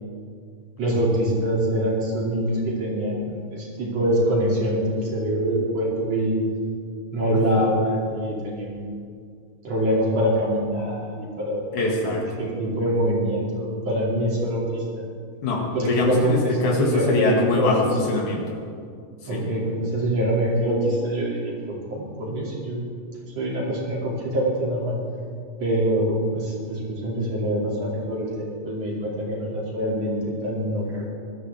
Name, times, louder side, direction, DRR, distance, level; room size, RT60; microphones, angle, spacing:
voice 1, 0.8-6.4 7.1-8.9 9.6-11.7 12.0-12.1 12.4-14.8 15.7-17.7 19.3-22.8 23.3-25.0 25.6-31.1, right 1 dB, 50° right, -4 dB, 3.7 m, -24 dB
voice 2, 7.3-7.7 11.7-12.2 15.4-18.6 19.2-19.5, left 3 dB, 60° left, -1 dB, 3.2 m, -24 dB
21.5 x 13.0 x 3.5 m, 2.2 s
omnidirectional pair, 4.0 m